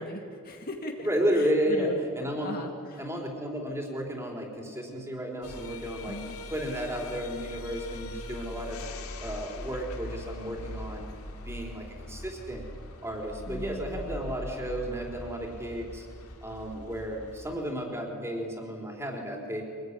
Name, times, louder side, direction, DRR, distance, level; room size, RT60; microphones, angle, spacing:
voice 1, 0.0-1.1 1.3-2.0 2.3-3.1 6.1-6.4 13.5-14.2, left 1 dB, 40° left, 2 dB, 2.1 m, -39 dB
voice 2, 1.0-2.6 3.0-6.2 6.5-11.1 11.4-12.6 13.0-16.1 16.4-19.6, equal, 10° right, 0 dB, 4.1 m, -32 dB
sound 1, 5.4-17.6, left 1 dB, 80° left, 2.5 m, -41 dB
25.0 x 19.5 x 9.8 m, 2.3 s
head